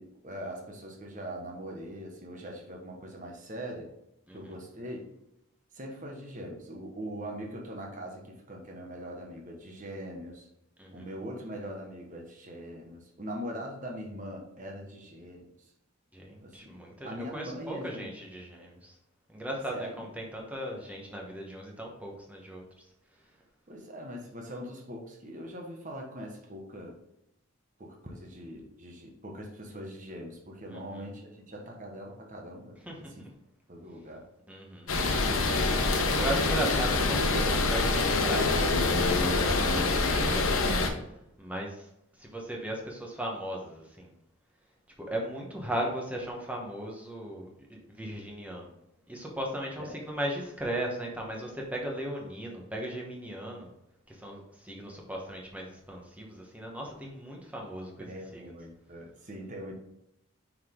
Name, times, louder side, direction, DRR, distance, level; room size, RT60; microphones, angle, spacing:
voice 1, 0.0-3.9 4.3-5.1 5.7-10.5 10.9-15.5 16.4-16.8 17.0-18.1 19.7-20.1 23.7-27.0 27.8-33.3 33.7-34.2 49.8-50.0 58.0-59.7, equal, 35° right, 1 dB, 1.2 m, -41 dB
voice 2, 10.8-11.1 16.1-18.9 19.3-22.6 30.7-31.0 32.8-33.3 34.5-34.9 35.9-41.9 42.2-44.1 45.0-48.7 49.1-53.7 54.1-58.1 58.3-58.4, right 1 dB, 5° right, -1 dB, 1.1 m, -37 dB
sound 1, 34.9-40.9, left 3 dB, 75° left, 0.9 m, -25 dB
5.8 x 4.8 x 3.7 m, 0.82 s
head